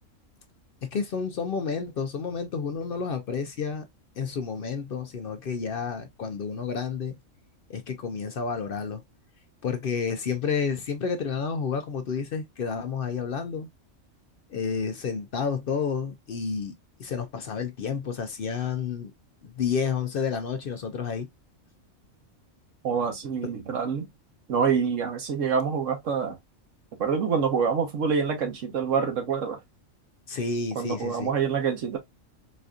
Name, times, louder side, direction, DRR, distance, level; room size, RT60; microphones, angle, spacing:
voice 1, 0.8-3.8 4.2-7.2 7.7-9.0 9.6-13.7 14.5-16.7 17.0-19.1 19.4-21.3 23.4-23.5 30.3-31.3, left 6 dB, 60° left, 0.6 m, -30 dB
voice 2, 22.8-24.1 24.5-26.4 27.0-29.6 30.7-32.0, right 6 dB, 75° right, 1.2 m, -26 dB
4.2 x 2.6 x 2.3 m
omnidirectional pair, 1.3 m